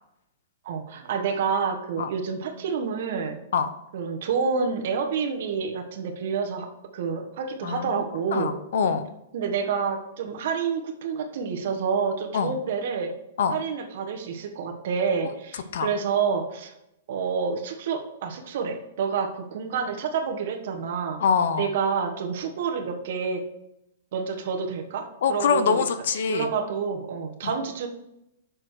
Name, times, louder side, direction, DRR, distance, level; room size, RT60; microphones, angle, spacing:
voice 1, 0.6-3.4 3.9-6.7 6.9-8.6 9.3-13.1 13.5-16.7 17.1-21.2 21.6-23.4 24.1-25.8 26.3-27.9, right 6 dB, 45° right, 4 dB, 1.2 m, -28 dB
voice 2, 7.6-8.0 8.3-9.1 12.3-12.5 13.4-13.6 15.7-15.9 21.2-21.7 25.2-26.5 27.4-27.6, left 6 dB, 55° left, 10 dB, 0.7 m, -24 dB
6.8 x 6.3 x 4.7 m, 0.84 s
hypercardioid pair, 180°, 0 cm